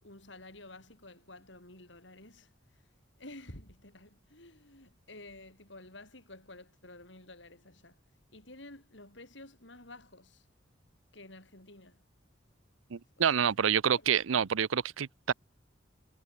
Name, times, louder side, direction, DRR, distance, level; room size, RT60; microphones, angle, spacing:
voice 1, 0.0-2.8 3.2-8.0 8.3-10.5 11.1-12.0 13.2-14.5, left 2 dB, 65° left, 7.7 m, -51 dB
voice 2, 12.9-15.3, right 8 dB, 85° right, 0.6 m, -28 dB
head